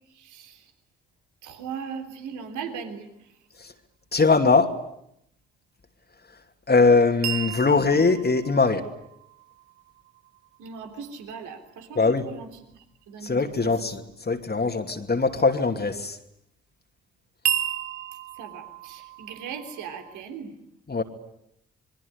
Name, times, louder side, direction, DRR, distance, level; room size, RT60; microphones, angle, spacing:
voice 1, 0.1-0.7 1.4-3.3 10.6-13.9 18.3-20.6, right 6 dB, 65° right, 6 dB, 3.4 m, -39 dB
voice 2, 4.1-4.7 6.7-8.9 12.0-12.3 13.2-16.2 20.9-21.0, left 4 dB, 30° left, 5 dB, 2.7 m, -21 dB
sound 1, 7.2-11.2 17.5-20.2, right 11 dB, 85° right, 1.2 m, -34 dB
27.0 x 22.5 x 9.8 m, 0.77 s
hypercardioid pair, 40°, 32 cm